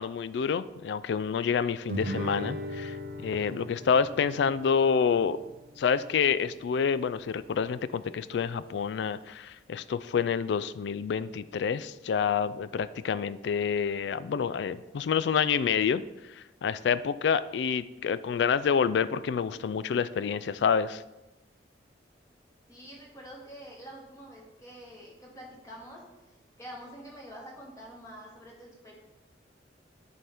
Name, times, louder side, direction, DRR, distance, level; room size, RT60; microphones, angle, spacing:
voice 1, 0.0-3.0 3.2-5.4 5.8-16.0 16.4-21.0, left 6 dB, 70° left, 16 dB, 0.3 m, -28 dB
Guitar, 1.9-7.0, right 1 dB, 55° right, 0.6 m, -39 dB
voice 2, 22.7-29.0, equal, 15° left, -3 dB, 1.3 m, -47 dB
10.5 x 4.3 x 3.5 m, 0.99 s
head